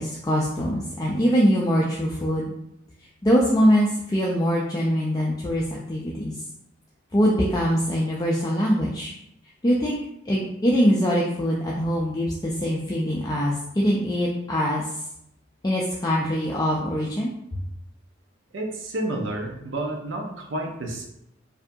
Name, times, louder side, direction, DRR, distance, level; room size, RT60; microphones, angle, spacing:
voice 1, 0.0-2.5 3.2-6.4 7.1-9.1 9.6-9.9 10.3-14.9 15.6-17.3, equal, 20° left, -4 dB, 0.4 m, -23 dB
voice 2, 18.5-21.0, right 1 dB, 85° right, 1 dB, 0.7 m, -30 dB
4.5 x 2.7 x 2.6 m, 0.78 s
head